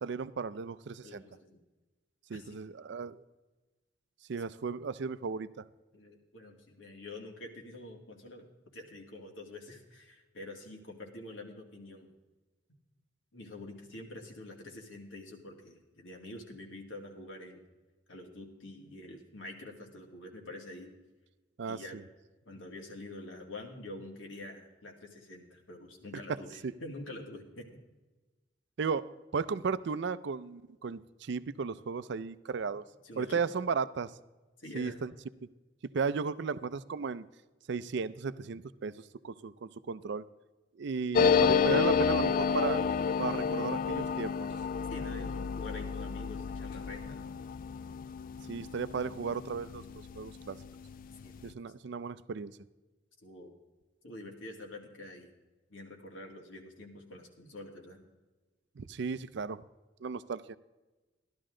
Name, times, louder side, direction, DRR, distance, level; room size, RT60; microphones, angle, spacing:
voice 1, 0.0-1.2 2.3-3.2 4.3-5.6 21.6-21.8 26.6-26.7 28.8-32.8 33.2-34.1 34.7-35.1 35.9-37.2 37.7-40.2 40.8-42.8 43.2-44.3 48.5-49.8 50.1-50.6 51.4-52.5 58.8-59.6 60.0-60.6, right 5 dB, 60° right, 16 dB, 0.4 m, -35 dB
voice 2, 1.0-1.6 2.3-2.6 4.3-4.5 5.9-12.1 13.3-17.6 18.1-20.9 21.7-22.0 22.5-27.7 33.0-33.4 34.6-35.0 44.9-47.3 51.2-51.5 53.2-53.5 54.0-55.3 55.7-58.0, left 2 dB, 80° left, 1 dB, 2.2 m, -46 dB
sound 1, 41.1-50.3 50.6-50.7 50.9-51.5, left 6 dB, 45° left, 0.3 m, -30 dB
14.0 x 12.0 x 3.8 m, 1.2 s
head